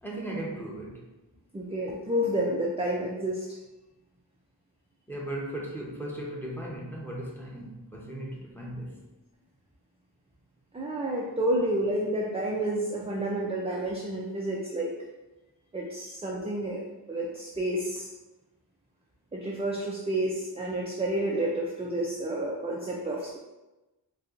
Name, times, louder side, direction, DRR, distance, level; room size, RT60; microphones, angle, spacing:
voice 1, 0.0-1.0 5.1-8.9, right 1 dB, 5° left, -3 dB, 0.9 m, -37 dB
voice 2, 1.5-3.4 10.7-14.9 15.7-16.8 17.1-18.1 19.3-23.4, right 1 dB, 15° right, -3 dB, 0.5 m, -30 dB
4.3 x 2.3 x 2.6 m, 1.1 s
cardioid pair, 50°, 43 cm